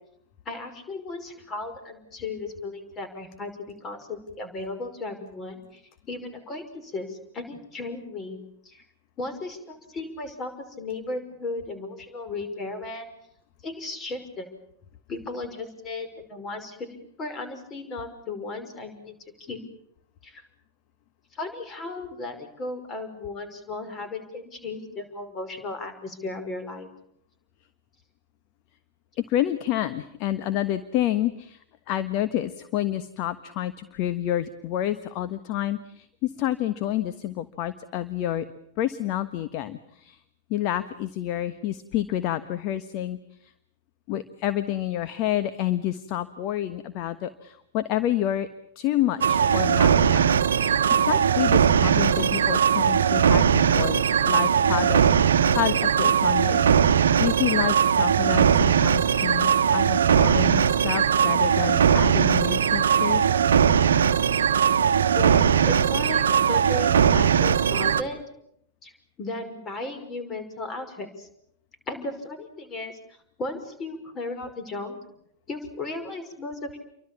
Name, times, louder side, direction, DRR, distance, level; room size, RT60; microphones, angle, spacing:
voice 1, 0.5-5.8 6.1-8.4 8.6-8.8 9.2-13.1 13.6-14.5 15.1-19.6 20.2-20.4 21.3-26.9 65.1-68.2 68.8-68.9 69.2-71.3 71.9-73.0 73.4-75.0 75.5-76.8, left 2 dB, 25° left, 9 dB, 5.8 m, -35 dB
voice 2, 29.2-31.6 31.9-38.5 38.8-40.2 40.5-43.5 44.1-48.5 48.7-50.3 50.6-56.6 57.2-63.3, left 12 dB, 40° left, 11 dB, 1.4 m, -29 dB
sound 1, 49.2-68.0, right 8 dB, 65° right, 1.1 m, -20 dB
29.5 x 24.0 x 7.2 m, 0.74 s
figure-of-eight pair, 90°, 0 cm